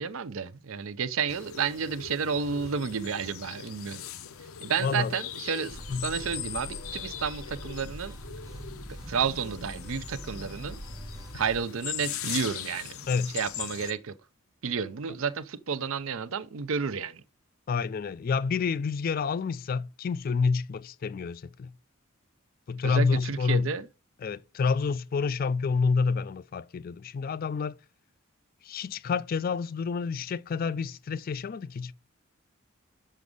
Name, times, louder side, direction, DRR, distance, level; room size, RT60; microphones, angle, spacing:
voice 1, 0.0-4.0 4.6-8.1 9.1-10.8 11.3-13.1 13.3-14.1 14.6-17.2 22.8-23.9, right 6 dB, 70° right, 0.6 m, -31 dB
sound 1, 1.3-13.9, left 10 dB, 80° left, 0.7 m, -40 dB
voice 2, 4.8-5.1 5.9-6.1 13.1-13.3 17.7-21.7 22.7-23.7 24.2-27.8 28.6-31.9, left 5 dB, 40° left, 0.3 m, -28 dB
sound 2, 5.7-11.6, right 1 dB, 20° right, 0.8 m, -43 dB
6.4 x 6.1 x 5.3 m
head